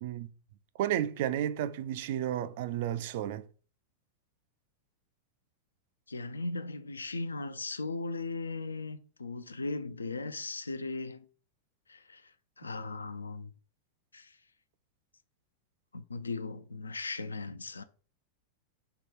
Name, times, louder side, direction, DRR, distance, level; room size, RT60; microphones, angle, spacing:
voice 1, 0.8-3.4, right 11 dB, 50° right, 0.3 m, -32 dB
voice 2, 6.1-11.2 11.9-12.2 12.6-13.5 14.1-14.3 15.9-17.8, left 3 dB, 75° left, 0.3 m, -37 dB
3.5 x 2.2 x 4.4 m
figure-of-eight pair, 90°, 0 cm